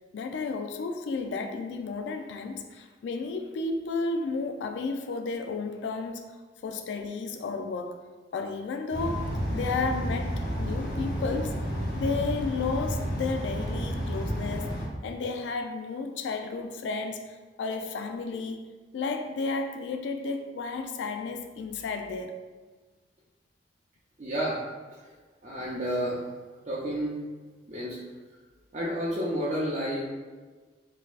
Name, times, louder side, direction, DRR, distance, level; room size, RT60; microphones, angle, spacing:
voice 1, 0.1-6.3 6.6-8.0 8.3-11.5 12.0-14.8 15.0-18.7 18.9-22.4, left 4 dB, 85° left, 5 dB, 0.3 m, -32 dB
sound 1, 8.9-14.9, equal, 65° left, 0.8 m, -31 dB
voice 2, 24.2-24.6 25.4-26.2 26.7-27.1 27.7-28.0 28.7-30.1, equal, 40° right, -7 dB, 0.5 m, -30 dB
3.9 x 2.7 x 2.4 m, 1.3 s
head